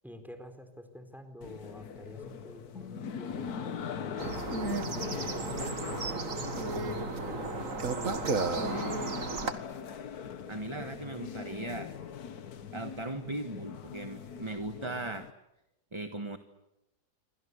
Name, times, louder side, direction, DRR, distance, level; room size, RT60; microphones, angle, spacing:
voice 1, 0.0-8.8, left 1 dB, ahead, 7 dB, 4.2 m, -49 dB
sound 1, 1.4-15.3, left 7 dB, 65° left, 1.7 m, -41 dB
sound 2, 4.2-9.5, right 4 dB, 55° right, 2.2 m, -33 dB
voice 2, 10.5-12.0 12.7-15.3 15.9-16.4, right 2 dB, 20° right, 8 dB, 1.4 m, -38 dB
28.0 x 25.5 x 8.4 m, 0.92 s
omnidirectional pair, 1.7 m